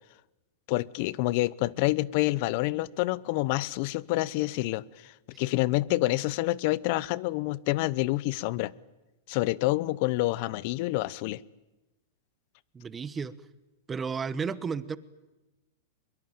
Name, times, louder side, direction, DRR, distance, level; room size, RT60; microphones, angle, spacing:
voice 1, 0.7-8.7 9.3-11.4, left 19 dB, 50° left, 21 dB, 0.8 m, -28 dB
voice 2, 12.7-13.3 13.9-15.0, right 5 dB, 15° right, 16 dB, 1.1 m, -32 dB
23.0 x 23.0 x 9.0 m, 1.0 s
hypercardioid pair, 135°, 0 cm